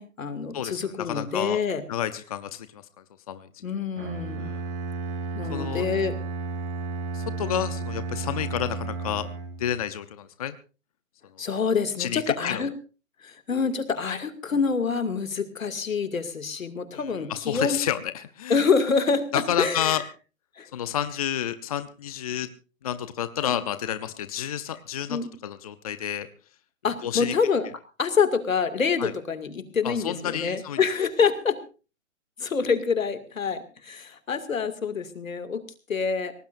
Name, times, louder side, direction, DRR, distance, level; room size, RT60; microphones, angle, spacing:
voice 1, 0.0-1.8 3.6-4.5 5.3-6.2 11.4-12.7 13.2-17.8 18.5-20.0 20.6-20.7 23.4-23.6 25.1-25.3 26.8-27.7 28.0-31.6 32.4-35.6 35.9-36.3, left 5 dB, 80° left, 9 dB, 2.4 m, -26 dB
voice 2, 0.5-1.6 1.9-2.8 3.3-3.5 4.4-4.6 5.5-5.9 7.1-9.3 9.6-10.6 12.0-12.6 16.9-18.6 19.3-20.0 20.7-22.5 22.8-26.3 27.0-27.3 29.0-29.1 29.8-30.8, left 10 dB, 30° left, 12 dB, 0.6 m, -30 dB
Bowed string instrument, 4.0-9.8, right 3 dB, 40° right, 2.9 m, -33 dB
23.5 x 18.5 x 2.6 m, 0.35 s
hypercardioid pair, 155°, 40 cm